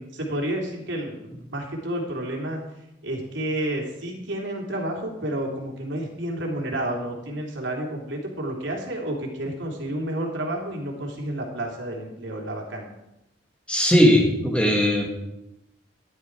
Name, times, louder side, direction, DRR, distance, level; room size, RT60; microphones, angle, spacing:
voice 1, 0.0-2.6 3.0-12.9, right 1 dB, 85° right, 0 dB, 3.2 m, -30 dB
voice 2, 13.7-15.1, equal, 5° left, 1 dB, 2.2 m, -18 dB
13.5 x 10.5 x 4.7 m, 0.90 s
head